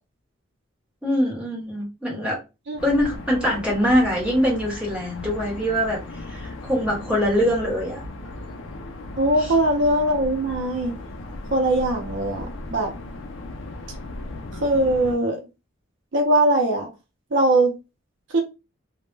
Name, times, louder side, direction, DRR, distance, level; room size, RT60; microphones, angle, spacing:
voice 1, 1.0-2.4 2.8-8.0 9.4-9.5, equal, 5° right, -4 dB, 1.0 m, -23 dB
sound 1, 2.8-15.2, left 2 dB, 65° left, 0.4 m, -37 dB
voice 2, 9.2-11.0 11.5-12.9 14.6-15.4 16.1-16.9 17.3-17.7 18.3-18.4, right 1 dB, 60° right, 2 dB, 0.5 m, -21 dB
2.1 x 2.1 x 3.1 m, 0.27 s
head